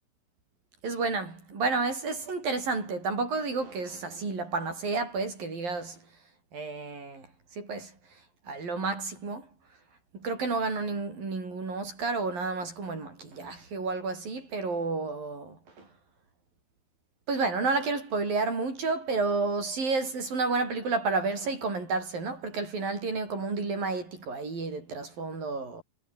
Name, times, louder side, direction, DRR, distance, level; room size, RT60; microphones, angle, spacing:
voice 1, 0.8-6.0 6.5-7.3 7.5-8.0 8.5-9.5 10.1-15.9 17.3-25.8, right 4 dB, 75° right, 9.8 m, -31 dB
omnidirectional pair, 4.1 m